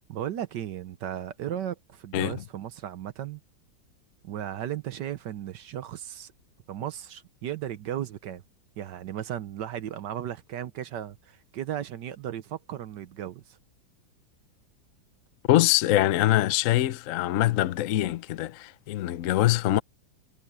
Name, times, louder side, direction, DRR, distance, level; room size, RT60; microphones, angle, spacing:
voice 1, 0.1-3.4 4.2-6.3 6.7-8.4 8.8-13.6, right 11 dB, 65° right, 1.3 m, -35 dB
voice 2, 2.1-2.4 15.5-19.8, left 14 dB, 70° left, 0.7 m, -23 dB
omnidirectional pair, 2.2 m